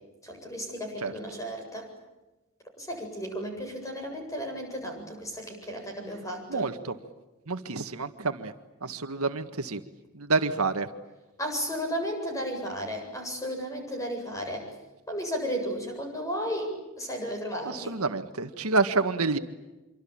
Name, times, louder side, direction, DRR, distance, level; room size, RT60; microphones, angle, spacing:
voice 1, 0.2-1.9 2.8-6.7 11.4-14.7 15.1-17.9, equal, 15° left, 3 dB, 8.0 m, -34 dB
voice 2, 6.5-7.0 7.5-8.5 8.8-9.8 10.1-10.9 17.6-19.4, right 3 dB, 85° right, 8 dB, 1.8 m, -28 dB
26.5 x 25.0 x 8.8 m, 1.1 s
head